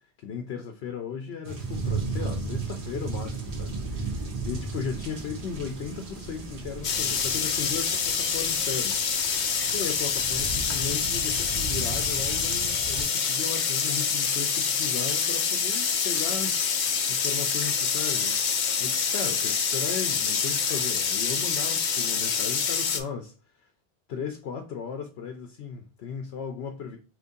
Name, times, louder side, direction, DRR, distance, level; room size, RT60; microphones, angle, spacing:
voice 1, 0.2-9.0 9.7-18.4 18.8-23.7 24.1-27.0, left 6 dB, 85° left, 0.9 m, -36 dB
sound 1, 1.4-13.0, right 3 dB, 60° right, 1.1 m, -35 dB
sound 2, 6.8-23.0, left 6 dB, 55° left, 0.7 m, -26 dB
3.7 x 3.1 x 2.6 m
omnidirectional pair, 1.0 m